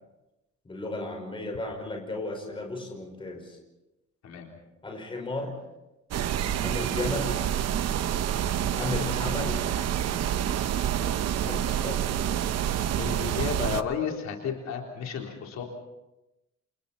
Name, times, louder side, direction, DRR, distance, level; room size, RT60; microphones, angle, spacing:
voice 1, 0.6-3.6 4.8-5.6 6.6-7.4 8.7-9.6 11.4-12.1, left 2 dB, 15° left, 2 dB, 5.3 m, -34 dB
sound 1, 6.1-13.8, right 10 dB, 60° right, 0.9 m, -28 dB
voice 2, 13.0-15.6, left 7 dB, 65° left, 0 dB, 3.9 m, -32 dB
29.0 x 28.5 x 4.4 m, 0.97 s
cardioid pair, 180°, 30 cm